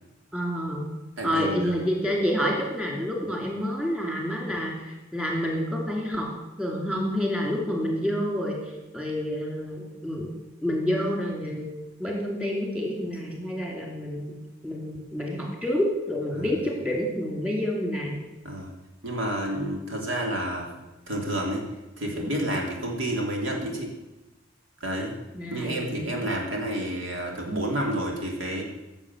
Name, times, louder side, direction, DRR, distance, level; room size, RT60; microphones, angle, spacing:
voice 1, 0.3-0.8 1.2-6.3 6.6-8.6 8.9-10.3 10.6-11.7 12.0-14.3 14.6-18.2 25.3-26.1, equal, 5° right, -1 dB, 2.8 m, -28 dB
voice 2, 1.2-1.8 16.3-16.5 18.4-18.7 19.0-20.7 21.1-21.6 22.0-23.9 24.8-25.1 25.5-28.6, right 1 dB, 75° right, 0 dB, 2.9 m, -29 dB
15.5 x 7.2 x 7.3 m, 1.0 s
head